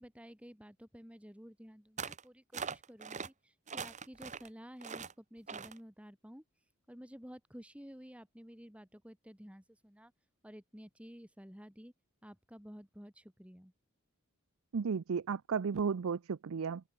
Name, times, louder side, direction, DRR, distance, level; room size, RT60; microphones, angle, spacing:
voice 1, 0.0-10.1 10.4-11.9 12.2-13.7, equal, 5° right, 2.3 m, -52 dB
sound 1, 2.0-2.2 2.5-3.3 3.7-4.5 4.8-5.1 5.5-5.8, right 6 dB, 35° right, 1.4 m, -42 dB
voice 2, 14.7-16.8, right 6 dB, 65° right, 0.5 m, -34 dB
open air
head